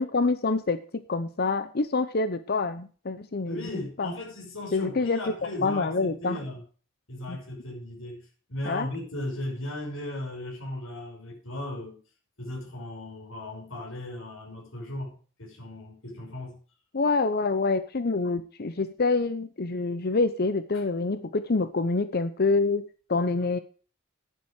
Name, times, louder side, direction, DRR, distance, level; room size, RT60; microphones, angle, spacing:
voice 1, 0.0-4.1 4.7-5.2 5.6-6.4 7.3-7.4 8.7-8.9 16.9-23.6, left 3 dB, 50° left, 12 dB, 0.8 m, -26 dB
voice 2, 3.5-6.6 7.1-12.0 12.4-16.6 20.7-20.8, left 1 dB, 80° left, -1 dB, 5.8 m, -37 dB
11.0 x 10.0 x 4.8 m, 0.38 s
head